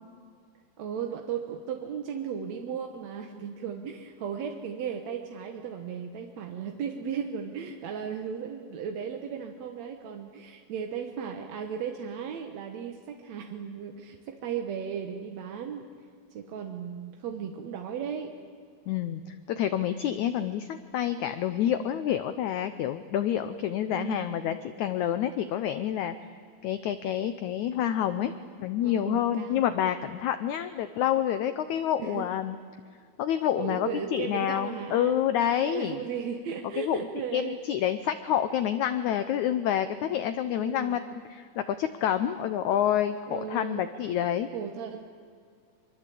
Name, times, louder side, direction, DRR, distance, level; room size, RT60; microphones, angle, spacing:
voice 1, 0.8-15.9 16.3-18.4 23.9-24.3 28.2-28.4 28.8-29.7 32.0-32.3 33.5-35.2 35.6-37.6 40.5-41.0 43.3-43.9 44.5-45.0, right 7 dB, 60° right, 4 dB, 2.0 m, -36 dB
voice 2, 18.9-26.1 26.6-28.3 28.6-32.6 33.2-36.0 36.8-37.0 37.3-41.0 41.3-44.5, left 10 dB, 80° left, 11 dB, 1.7 m, -28 dB
24.0 x 24.0 x 8.5 m, 2.2 s
omnidirectional pair, 4.4 m